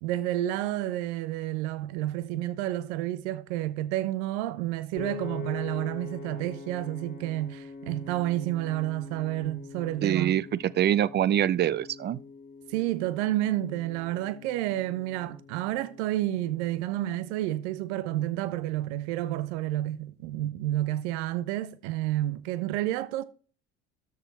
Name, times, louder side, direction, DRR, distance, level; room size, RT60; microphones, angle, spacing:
voice 1, 0.0-10.4 12.7-23.2, right 14 dB, 65° right, 0.8 m, -30 dB
Piano, 5.0-17.2, left 6 dB, 20° left, 3.0 m, -44 dB
voice 2, 10.0-12.2, right 11 dB, 30° right, 0.4 m, -25 dB
13.5 x 5.0 x 4.1 m
hypercardioid pair, 65°, 37 cm